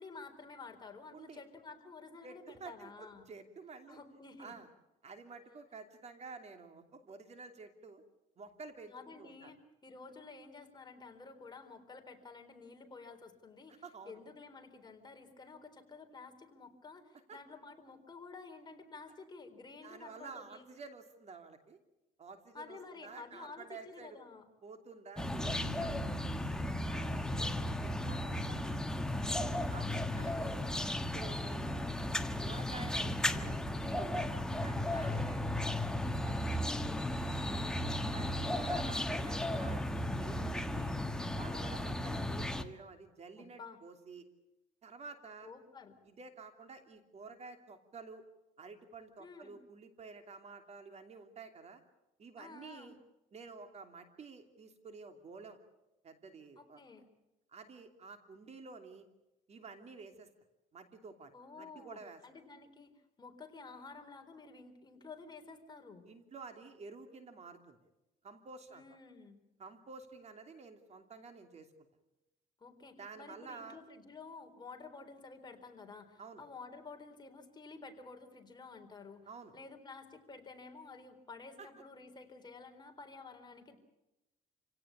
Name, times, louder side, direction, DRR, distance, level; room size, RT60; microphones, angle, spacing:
voice 1, 0.0-3.3 3.9-4.6 8.9-20.6 22.5-24.5 26.8-27.4 30.1-30.5 34.9-35.3 36.9-37.7 41.4-41.7 43.4-43.8 45.4-46.0 49.2-49.6 52.4-53.0 56.6-57.1 61.3-62.9 63.2-66.0 68.7-69.4 72.6-79.3 79.5-83.8, left 4 dB, 25° left, 4 dB, 3.8 m, -51 dB
voice 2, 2.2-4.0 4.4-4.7 5.0-8.0 8.4-8.9 9.2-9.5 13.7-14.2 17.3-17.4 19.8-21.8 22.2-24.2 24.6-26.1 26.9-27.1 27.4-29.3 29.7-30.7 31.1-31.9 32.2-34.2 34.6-36.0 36.2-36.8 37.5-37.7 38.0-40.9 41.3-44.3 44.8-45.5 46.0-48.2 48.6-51.8 52.2-53.0 53.3-55.6 56.0-56.8 57.5-59.0 59.5-60.3 60.7-61.3 61.6-62.2 66.0-67.8 68.2-68.8 69.6-71.7 73.0-73.8 76.2-76.4 79.3-79.5 81.6-81.7, right 4 dB, 40° right, 7 dB, 2.9 m, -51 dB
sound 1, 25.2-42.6, left 1 dB, 5° left, 1.5 m, -35 dB
28.0 x 17.5 x 8.6 m, 0.95 s
cardioid pair, 110°, 17 cm